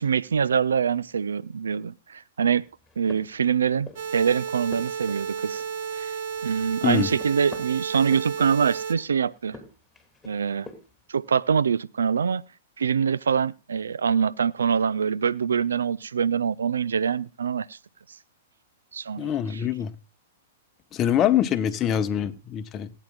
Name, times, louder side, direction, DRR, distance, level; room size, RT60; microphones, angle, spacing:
voice 1, 0.0-2.7 3.0-5.6 5.9-6.2 6.4-9.6 10.3-10.7 11.1-12.4 12.8-17.8 18.9-19.3, right 7 dB, 80° right, 0.4 m, -24 dB
sound 1, 2.7-4.2 4.5-6.0 6.3-8.9 9.4-11.1, left 3 dB, 10° left, 2.7 m, -47 dB
sound 2, 3.9-8.9, right 6 dB, 60° right, 1.6 m, -33 dB
voice 2, 19.2-19.9 20.9-22.9, left 10 dB, 30° left, 0.9 m, -24 dB
18.5 x 9.0 x 2.3 m
hypercardioid pair, 110°, 0 cm